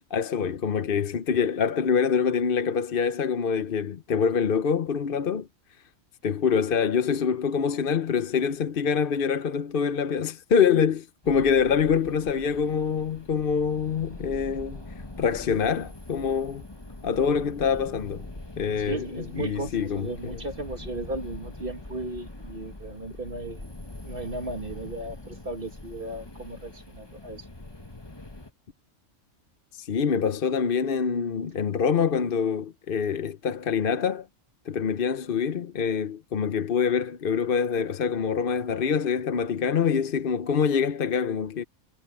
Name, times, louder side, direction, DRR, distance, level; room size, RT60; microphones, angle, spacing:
voice 1, 0.1-5.5 6.2-14.8 15.2-16.6 17.0-18.3 18.6-20.4 29.7-34.3 34.7-41.6, left 6 dB, 50° left, 0.9 m, -25 dB
sound 1, 11.2-28.5, left 2 dB, 20° left, 1.6 m, -43 dB
voice 2, 18.8-23.7 24.0-27.5, right 2 dB, 45° right, 2.5 m, -36 dB
omnidirectional pair, 1.3 m